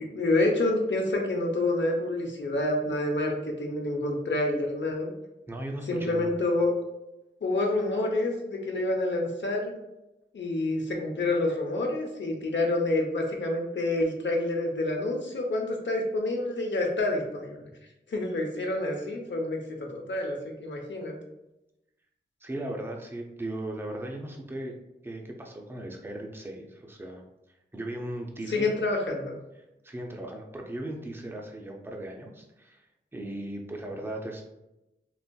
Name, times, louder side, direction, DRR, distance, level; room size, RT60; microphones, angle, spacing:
voice 1, 0.0-5.1 5.9-6.7 7.4-9.7 10.3-17.7 18.1-21.2 28.5-29.4, left 2 dB, 75° left, 1 dB, 0.8 m, -28 dB
voice 2, 5.5-6.4 22.4-24.8 25.0-28.8 29.8-32.9 33.1-34.4, right 1 dB, 10° right, 1 dB, 0.5 m, -37 dB
4.0 x 2.6 x 2.2 m, 0.94 s
wide cardioid pair, 75°, 19 cm